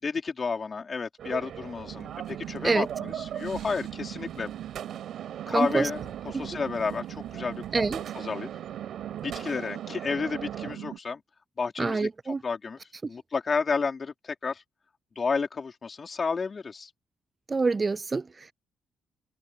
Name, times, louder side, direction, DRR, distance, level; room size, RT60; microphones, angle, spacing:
voice 1, 0.0-4.5 5.5-7.9 8.1-8.5 9.1-11.2 11.6-12.8 13.1-14.6 15.1-16.9, left 5 dB, 35° left, 4.7 m, -31 dB
sound 1, 1.2-10.7, right 9 dB, 65° right, 7.0 m, -40 dB
sound 2, 1.9-11.0, right 12 dB, 90° right, 3.4 m, -40 dB
voice 2, 5.5-5.9 6.3-6.4 7.7-8.0 11.8-12.4 17.5-18.3, right 4 dB, 30° right, 0.3 m, -26 dB
cardioid pair, 90°, 0 cm